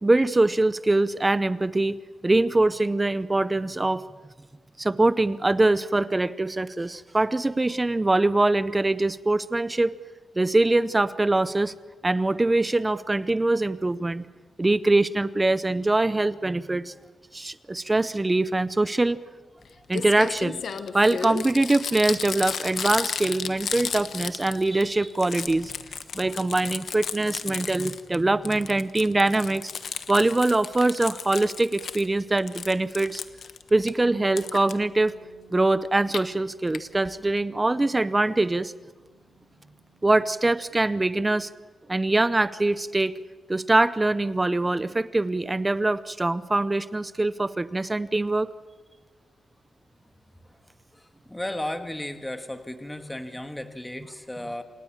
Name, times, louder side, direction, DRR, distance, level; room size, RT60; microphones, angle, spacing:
voice 1, 0.0-2.0 2.2-4.0 4.8-9.9 10.4-11.7 12.0-14.3 14.6-16.9 17.3-19.2 19.9-20.6 20.9-25.7 26.1-29.7 30.1-33.2 33.7-35.1 35.5-38.7 40.0-41.5 41.9-43.1 43.5-48.5, right 2 dB, 20° right, 15 dB, 0.7 m, -23 dB
Crumpling crinkling, 19.6-19.7 19.9-24.8 25.1-28.2 28.5-32.1 32.4-33.9 34.4-34.7 35.9-36.2 36.7-36.8 37.1-37.2 37.4-37.5, left 6 dB, 75° left, 1.2 m, -33 dB
Bass guitar, 34.0-40.3, equal, 45° left, 6.0 m, -54 dB
voice 2, 51.0-54.6, left 1 dB, 10° left, 7 dB, 1.7 m, -34 dB
27.5 x 18.5 x 7.4 m, 1.3 s
wide cardioid pair, 100°, 0 cm